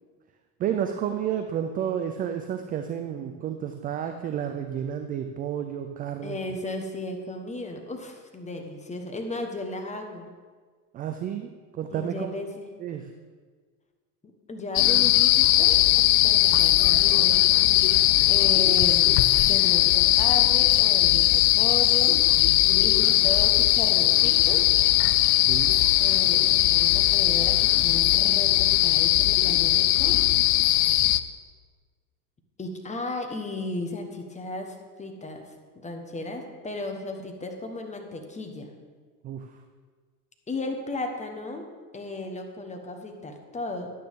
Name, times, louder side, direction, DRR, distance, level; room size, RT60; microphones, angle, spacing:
voice 1, 0.6-6.4 10.9-12.3 12.8-13.1 25.5-25.8 39.2-39.6, right 9 dB, 20° right, 6 dB, 0.3 m, -31 dB
voice 2, 6.2-10.3 11.9-12.7 14.5-22.2 22.8-24.6 26.0-30.2 32.6-38.7 40.5-41.7 41.9-43.9, left 2 dB, 15° left, 4 dB, 1.3 m, -35 dB
sound 1, 14.8-31.2, left 15 dB, 50° left, 0.5 m, -20 dB
11.0 x 9.3 x 3.6 m, 1.5 s
supercardioid pair, 110°, 47 cm